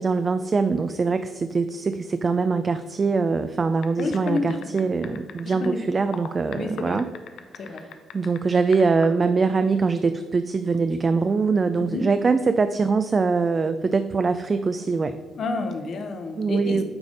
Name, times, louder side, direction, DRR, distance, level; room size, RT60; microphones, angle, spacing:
voice 1, 0.0-7.1 7.6-7.8 8.1-15.1 16.4-16.8, right 4 dB, 35° right, 10 dB, 0.3 m, -23 dB
sound 1, 3.8-5.7 6.1-8.4 8.7-9.1, left 8 dB, 75° left, 0.5 m, -39 dB
voice 2, 4.0-4.7 5.4-6.0 6.5-7.0 7.6-7.9 11.7-12.1 15.4-16.8, left 3 dB, 55° left, 6 dB, 0.9 m, -29 dB
8.9 x 3.5 x 3.9 m, 1.3 s
cardioid pair, 90°, 0 cm